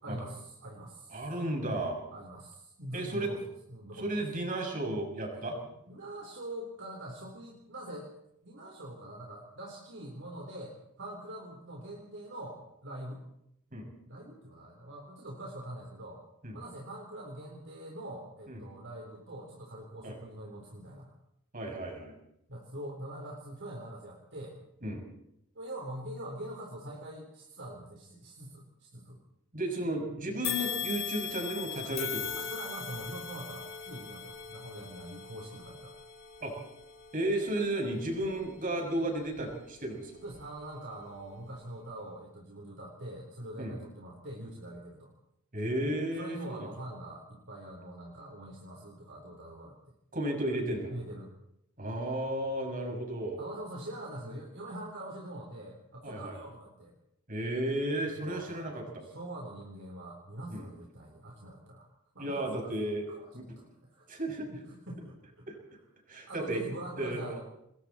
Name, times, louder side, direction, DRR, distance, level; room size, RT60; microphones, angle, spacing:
voice 1, 0.0-1.2 2.1-4.2 5.9-8.1 8.4-13.2 14.1-16.2 16.5-21.1 22.5-24.6 25.6-29.2 32.3-36.0 40.2-45.1 46.2-49.8 50.9-51.3 53.4-56.9 58.2-58.6 59.0-61.9 62.1-62.7 63.1-63.3 63.6-64.1 64.5-65.4 66.3-67.4, right 1 dB, 55° right, -1 dB, 4.1 m, -44 dB
voice 2, 1.1-2.0 2.9-3.3 3.9-5.6 13.7-13.9 16.4-16.6 18.5-18.6 20.0-20.2 21.5-22.1 24.8-25.0 29.5-32.4 36.4-36.5 37.1-40.1 43.6-43.7 45.5-46.7 50.1-50.9 51.8-53.4 56.0-56.4 57.3-59.1 60.5-60.7 62.2-63.1 63.3-63.4 64.1-64.5 65.5-65.6 66.1-66.6 67.0-67.4, right 1 dB, 40° right, 2 dB, 6.7 m, -33 dB
sound 1, 30.4-39.8 40.3-40.4 41.4-41.5, left 8 dB, 60° left, 4.3 m, -40 dB
28.0 x 21.0 x 4.4 m, 0.77 s
head